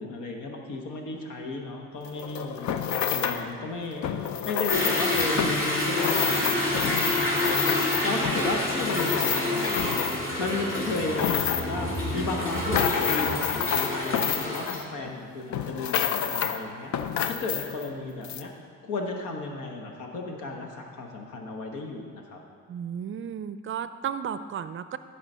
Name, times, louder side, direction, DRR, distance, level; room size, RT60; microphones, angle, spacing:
voice 1, 0.0-2.7 3.1-4.1 4.4-10.0 10.4-11.9 12.1-16.9 17.3-18.5 18.8-22.4, left 3 dB, 90° left, 2 dB, 1.2 m, -34 dB
sound 1, 2.0-3.5 4.0-10.4 10.8-11.8 12.3-15.2 15.5-16.6 16.9-17.9 18.2-18.4, left 8 dB, 70° left, 0.6 m, -29 dB
Toilet flush / Drip / Trickle dribble, 4.7-14.8, left 1 dB, 40° left, 2.6 m, -28 dB
voice 2, 22.7-25.0, right 8 dB, 45° right, 12 dB, 0.4 m, -33 dB
11.5 x 5.0 x 5.5 m, 2.1 s
cardioid pair, 90°, 30 cm